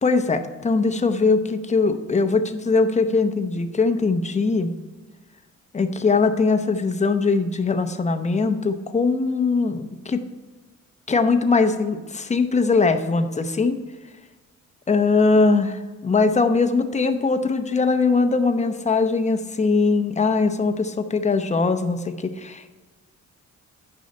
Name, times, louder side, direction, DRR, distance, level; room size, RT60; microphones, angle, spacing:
voice 1, 0.0-4.7 5.7-10.2 11.1-13.8 14.9-22.7, left 4 dB, 25° left, 8 dB, 0.8 m, -21 dB
9.4 x 5.6 x 5.3 m, 1.3 s
cardioid pair, 90°, 30 cm